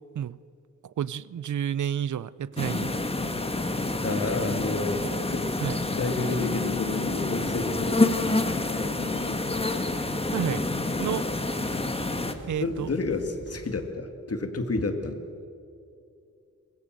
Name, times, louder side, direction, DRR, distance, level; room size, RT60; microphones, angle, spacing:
voice 1, 0.8-2.9 5.6-5.8 10.3-10.6 11.0-11.3 12.5-12.9, right 9 dB, 75° right, 19 dB, 0.6 m, -30 dB
sound 1, 2.5-13.8, right 1 dB, 40° right, 7.3 m, -46 dB
sound 2, 2.6-12.3, left 2 dB, 20° left, 1.5 m, -28 dB
voice 2, 4.0-8.6 9.2-9.4 12.3-15.2, left 2 dB, 50° left, 6 dB, 2.2 m, -31 dB
sound 3, 6.4-9.5, left 8 dB, 75° left, 0.6 m, -38 dB
23.5 x 21.0 x 7.6 m, 2.5 s
wide cardioid pair, 110°, 30 cm